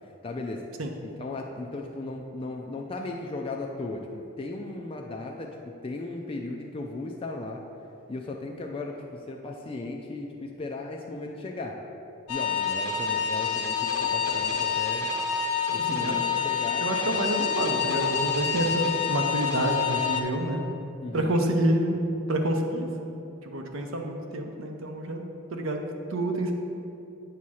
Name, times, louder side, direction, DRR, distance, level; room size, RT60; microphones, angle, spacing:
voice 1, 0.0-0.7 1.0-7.6 8.1-11.8 12.3-15.1 15.7-16.9 21.0-21.4, left 2 dB, 25° left, 1 dB, 0.3 m, -36 dB
sound 1, 12.3-20.2, left 6 dB, 85° left, 0.7 m, -27 dB
voice 2, 15.9-16.4 16.8-20.6 21.1-21.9 22.3-22.9 23.4-25.8 26.1-26.5, right 1 dB, 65° right, 3 dB, 0.7 m, -28 dB
8.4 x 2.8 x 6.2 m, 2.9 s
head